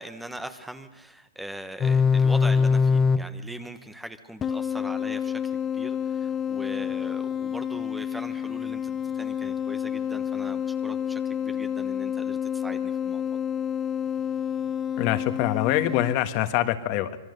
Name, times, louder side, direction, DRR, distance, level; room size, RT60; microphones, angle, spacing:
voice 1, 0.0-13.4, right 1 dB, 5° right, 10 dB, 1.1 m, -41 dB
sound 1, 1.8-3.2 4.4-16.1, left 6 dB, 20° left, 0.9 m, -27 dB
voice 2, 15.0-17.2, left 13 dB, 40° left, 10 dB, 1.5 m, -24 dB
25.5 x 22.0 x 6.7 m, 1.0 s
hypercardioid pair, 140°, 0 cm